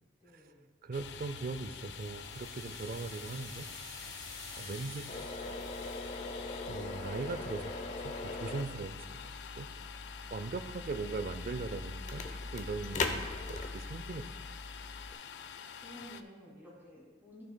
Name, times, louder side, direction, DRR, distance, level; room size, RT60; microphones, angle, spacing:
voice 1, 0.2-0.7 15.8-17.4, equal, 10° right, -6 dB, 2.3 m, -53 dB
voice 2, 0.8-3.7 4.6-5.1 5.4-5.6 6.7-9.7 10.3-14.3, right 3 dB, 50° right, 11 dB, 0.4 m, -40 dB
Domestic sounds home sounds, 0.9-16.2, left 7 dB, 65° left, 0.4 m, -47 dB
sound 1, 1.8-6.3, left 3 dB, 20° left, 2.8 m, -49 dB
sound 2, 5.1-15.1, left 3 dB, 40° left, 0.7 m, -40 dB
14.5 x 6.6 x 2.2 m, 1.4 s
head